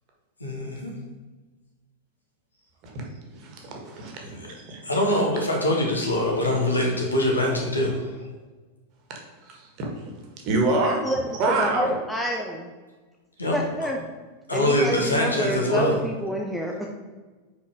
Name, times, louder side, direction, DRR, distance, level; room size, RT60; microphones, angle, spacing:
voice 1, 0.4-0.9 4.4-4.5 4.8-8.1 13.4-13.5 14.5-15.9, left 1 dB, 80° left, -1 dB, 1.5 m, -23 dB
voice 2, 3.3-4.2 4.6-4.8 9.4-10.1 10.4-11.0 11.4-11.9, right 2 dB, 40° right, 1 dB, 1.6 m, -26 dB
voice 3, 11.5-12.7 13.5-14.0 14.5-16.9, equal, ahead, 0 dB, 0.6 m, -28 dB
5.2 x 4.8 x 5.2 m, 1.3 s
figure-of-eight pair, 90°, 0 cm